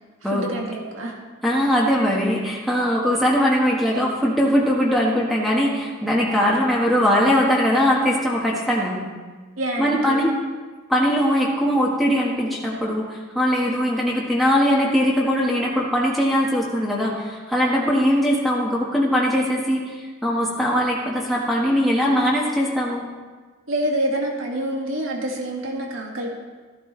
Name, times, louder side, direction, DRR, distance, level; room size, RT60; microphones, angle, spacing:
voice 1, 0.2-1.2 1.6-1.7 9.6-10.2 13.7-13.9 17.7-18.0 23.7-26.3, right 1 dB, 85° right, 0 dB, 2.0 m, -27 dB
voice 2, 1.4-9.0 9.8-10.3 10.9-19.9 20.2-23.0, equal, ahead, -5 dB, 1.5 m, -20 dB
14.5 x 11.5 x 3.3 m, 1.4 s
head